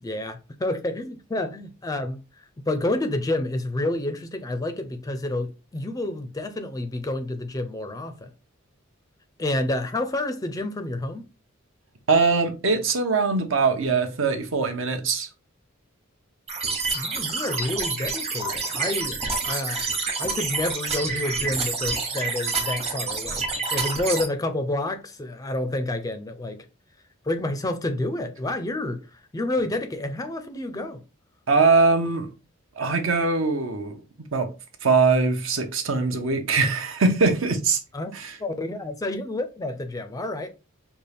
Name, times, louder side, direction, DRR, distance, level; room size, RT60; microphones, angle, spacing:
voice 1, 0.0-2.2 2.7-8.3 9.4-11.3 16.9-19.2 19.4-26.6 27.3-31.0 37.9-38.1 38.4-40.5, left 1 dB, 15° left, 0.4 m, -29 dB
voice 2, 12.1-15.3 31.5-32.3 32.8-34.0 34.3-34.5 34.8-37.8 38.1-38.4, right 4 dB, 65° right, 0.8 m, -22 dB
sound 1, 16.5-24.3, right 4 dB, 30° right, 1.0 m, -28 dB
5.3 x 2.3 x 3.3 m
head